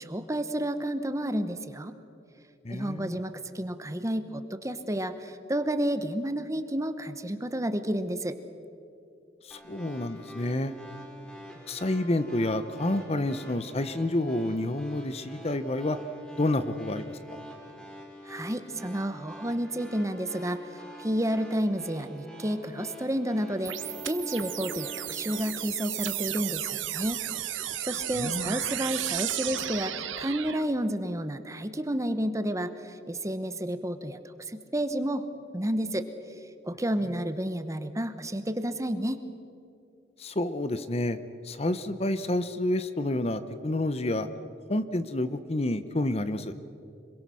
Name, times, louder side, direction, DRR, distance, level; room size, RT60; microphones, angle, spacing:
voice 1, 0.0-1.9 2.7-8.4 18.2-20.6 21.0-27.2 27.8-34.2 34.5-36.1 36.7-39.2, right 1 dB, 15° right, 10 dB, 1.0 m, -31 dB
voice 2, 2.6-3.2 9.5-10.7 11.7-16.0 16.4-17.2 28.2-28.6 40.2-41.2 41.4-44.3 44.7-46.5, left 1 dB, 35° left, 12 dB, 0.8 m, -29 dB
sound 1, 9.5-25.5, equal, 5° left, 2.7 m, -46 dB
sound 2, 23.6-30.6, right 12 dB, 90° right, 1.1 m, -34 dB
26.0 x 22.5 x 6.3 m, 2.7 s
head